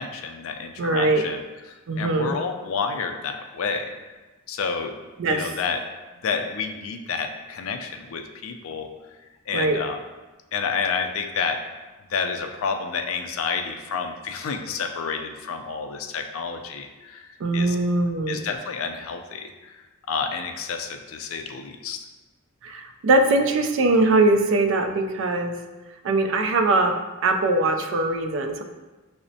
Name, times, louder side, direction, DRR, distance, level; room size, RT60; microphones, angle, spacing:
voice 1, 0.0-1.4 1.6-3.9 4.5-4.9 5.2-5.8 6.2-8.9 9.5-10.0 10.5-11.6 12.1-17.8 18.3-22.1, left 5 dB, 65° left, 6 dB, 0.4 m, -30 dB
voice 2, 0.8-1.2 1.9-2.3 5.2-5.5 9.5-9.8 17.4-18.4 22.6-25.5 26.0-26.9 27.2-28.6, right 2 dB, 60° right, 5 dB, 0.4 m, -21 dB
5.8 x 2.0 x 2.6 m, 1.2 s
head